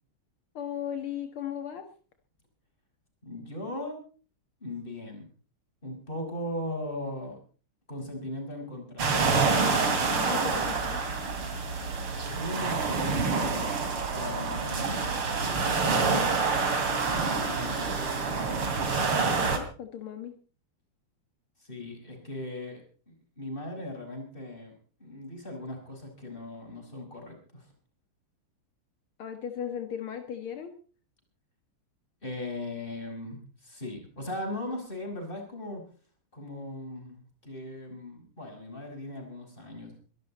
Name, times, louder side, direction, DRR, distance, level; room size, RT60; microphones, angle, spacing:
voice 1, 0.5-1.8 10.1-11.0 19.1-20.3 29.2-30.7, left 9 dB, 75° left, 6 dB, 2.4 m, -37 dB
voice 2, 3.2-4.0 4.6-5.3 5.8-7.4 7.9-9.2 12.1-13.4 14.1-15.1 15.9-16.9 17.4-18.0 21.6-22.8 23.1-27.7 32.2-35.8 36.3-40.0, left 1 dB, 20° left, 2 dB, 6.1 m, -38 dB
sound 1, 9.0-19.6, right 4 dB, 80° right, 3.6 m, -27 dB
23.5 x 13.0 x 4.3 m, 0.40 s
omnidirectional pair, 2.4 m